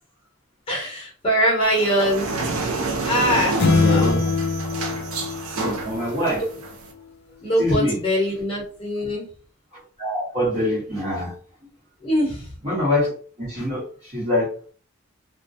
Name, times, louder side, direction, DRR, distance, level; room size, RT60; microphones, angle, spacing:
voice 1, 0.7-2.5 3.0-4.2 6.3-6.5 7.4-9.3 12.0-12.5, equal, 25° left, -3 dB, 0.9 m, -23 dB
sound 1, 1.6-6.9, right 3 dB, 80° right, 0.5 m, -29 dB
sound 2, 3.6-6.2, left 4 dB, 50° left, 0.4 m, -22 dB
voice 2, 3.8-4.2 5.5-6.4 7.6-8.0 10.0-11.3 12.6-13.1 13.4-13.8 14.1-14.5, left 1 dB, 35° right, -5 dB, 1.1 m, -24 dB
2.2 x 2.1 x 2.6 m, 0.41 s
head